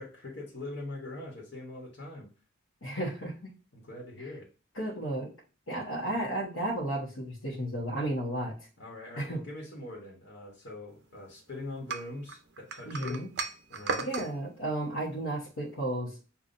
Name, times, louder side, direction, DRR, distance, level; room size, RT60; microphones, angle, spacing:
voice 1, 0.0-2.3 3.7-4.4 6.0-6.3 8.8-13.2 13.7-14.1, left 2 dB, 60° left, -2 dB, 1.2 m, -42 dB
voice 2, 2.8-3.5 4.7-5.3 5.7-8.7 9.2-9.4 12.9-13.3 14.0-16.2, right 1 dB, 85° left, -5 dB, 1.1 m, -33 dB
sound 1, 11.9-14.3, right 4 dB, 55° right, 0.6 m, -35 dB
6.9 x 2.4 x 2.6 m, 0.36 s
head